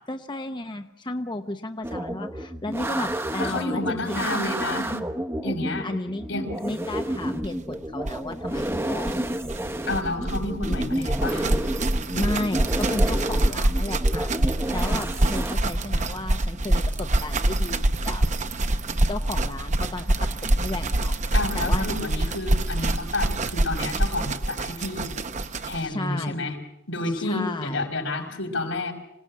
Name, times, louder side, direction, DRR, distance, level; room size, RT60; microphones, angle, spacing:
voice 1, 0.1-4.3 5.8-6.3 6.6-9.1 10.6-11.1 12.1-18.2 19.1-20.1 20.4-21.2 21.5-21.9 25.5-26.3 27.2-27.9, left 2 dB, 25° left, 7 dB, 0.8 m, -33 dB
sound 1, 1.8-15.5, right 1 dB, 15° right, 1.0 m, -30 dB
voice 2, 3.4-4.9 5.4-5.9 6.3-6.5 9.9-11.5 21.3-25.1 25.6-26.6 26.9-28.9, left 2 dB, 85° left, 1 dB, 5.3 m, -30 dB
sound 2, 7.4-7.5 7.7-7.8 8.0-25.9, right 1 dB, 40° right, 0.9 m, -25 dB
26.5 x 17.5 x 8.4 m, 0.81 s
head